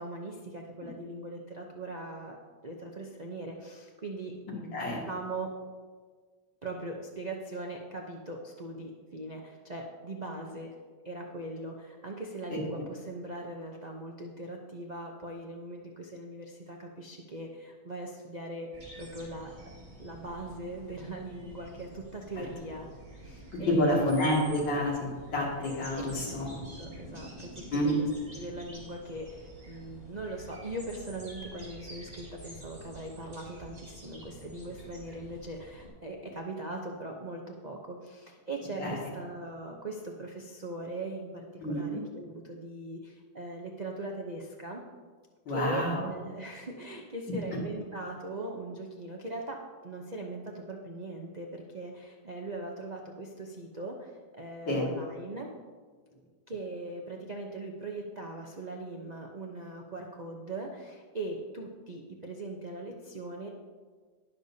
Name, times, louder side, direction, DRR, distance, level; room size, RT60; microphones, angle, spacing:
voice 1, 0.0-2.4 2.6-5.5 6.6-10.7 11.0-18.7 19.0-19.5 20.0-22.9 23.2-24.3 26.4-26.5 26.8-28.1 28.3-44.8 45.5-55.5 56.5-63.5, right 2 dB, 50° right, 0 dB, 0.5 m, -40 dB
sound 1, 18.7-35.9, equal, 25° right, 2.7 m, -48 dB
voice 2, 23.5-26.5 27.7-27.9 38.8-39.0 41.6-41.8 45.5-46.0 54.7-54.8, left 1 dB, 80° left, -4 dB, 3.0 m, -28 dB
19.5 x 6.6 x 2.8 m, 1.5 s
omnidirectional pair, 2.0 m